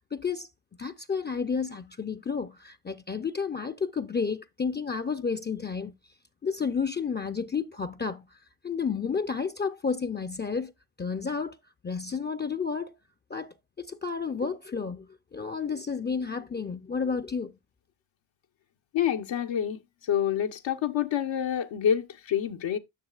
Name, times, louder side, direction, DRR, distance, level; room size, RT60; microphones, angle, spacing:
voice 1, 0.1-0.5 0.8-5.9 6.4-8.3 8.6-10.7 11.0-11.6 11.8-12.9 13.3-17.5, left 5 dB, 20° left, 0.5 m, -31 dB
voice 2, 18.9-19.8 20.1-22.8, left 9 dB, 70° left, 0.9 m, -27 dB
10.5 x 6.4 x 2.4 m
cardioid pair, 60°, 47 cm